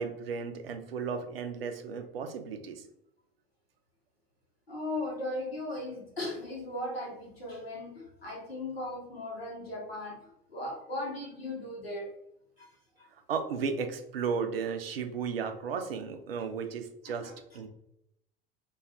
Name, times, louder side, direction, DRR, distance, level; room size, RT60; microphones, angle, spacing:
voice 1, 0.0-2.8 13.3-17.7, right 5 dB, 75° right, 7 dB, 0.5 m, -34 dB
voice 2, 4.7-12.1 12.6-12.7 17.1-17.3, left 1 dB, 90° left, -2 dB, 0.9 m, -37 dB
2.3 x 2.3 x 3.4 m, 0.78 s
figure-of-eight pair, 75°, 29 cm